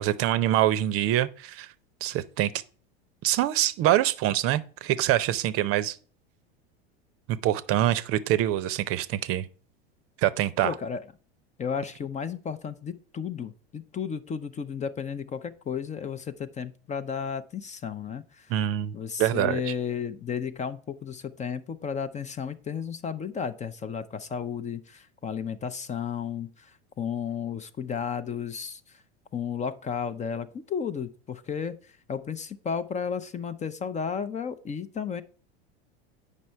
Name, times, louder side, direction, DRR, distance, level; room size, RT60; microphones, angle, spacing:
voice 1, 0.0-1.7 2.0-2.5 3.2-6.0 7.4-9.5 10.2-10.7 18.5-18.9 19.2-19.6, right 13 dB, 45° right, 0.6 m, -25 dB
voice 2, 10.6-11.0 11.6-18.5 18.9-29.0 29.3-35.2, left 7 dB, 25° left, 0.5 m, -33 dB
8.3 x 5.4 x 4.4 m
hypercardioid pair, 100°, 31 cm